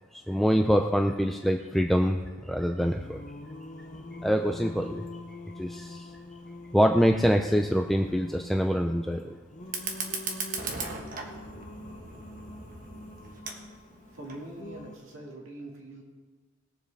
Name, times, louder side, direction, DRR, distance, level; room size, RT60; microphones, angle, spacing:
voice 1, 0.1-3.2 4.2-5.1 5.6-6.1 6.7-9.3, equal, ahead, 3 dB, 0.4 m, -25 dB
Singing, 2.9-15.0, left 2 dB, 40° left, 0.8 m, -45 dB
Fire, 9.6-14.6, right 4 dB, 45° right, 1.3 m, -38 dB
voice 2, 14.1-16.0, right 1 dB, 90° right, -1 dB, 1.9 m, -43 dB
20.5 x 7.3 x 3.4 m, 1.4 s
head